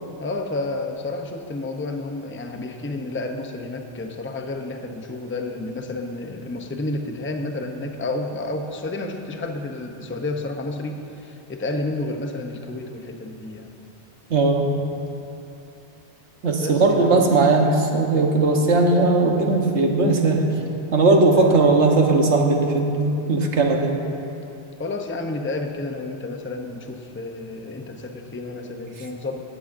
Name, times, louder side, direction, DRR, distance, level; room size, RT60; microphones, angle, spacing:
voice 1, 0.2-13.7 16.6-17.2 21.3-21.7 24.8-29.4, left 2 dB, 15° left, 4 dB, 0.6 m, -30 dB
voice 2, 14.3-14.7 16.4-20.5 20.9-24.0, right 3 dB, 75° right, 2 dB, 1.5 m, -18 dB
17.0 x 14.0 x 2.6 m, 2.7 s
omnidirectional pair, 1.2 m